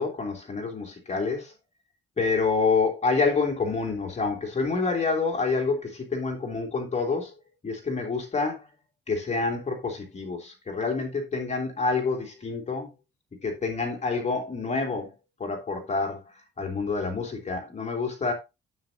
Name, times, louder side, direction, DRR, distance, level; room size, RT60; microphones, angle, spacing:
voice 1, 0.0-1.5 2.2-7.3 7.6-8.6 9.1-12.9 13.4-15.1 15.4-16.2 16.6-18.3, left 4 dB, 35° left, 3.1 m, -27 dB
9.4 x 8.5 x 2.8 m
cardioid pair, 90°, 20 cm